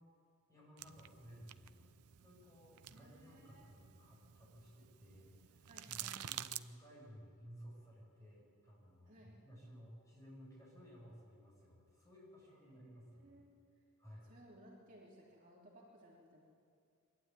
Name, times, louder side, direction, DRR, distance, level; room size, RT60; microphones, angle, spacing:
voice 1, 0.5-1.9 2.2-13.4 14.0-14.3, equal, 15° left, -5 dB, 7.1 m, -57 dB
sound 1, 0.8-6.6, right 12 dB, 85° right, 0.6 m, -50 dB
voice 2, 2.8-3.7 5.6-6.2 9.1-9.4 12.7-13.5 14.2-16.4, right 1 dB, 35° right, -5 dB, 3.3 m, -61 dB
23.0 x 12.0 x 9.3 m, 2.3 s
head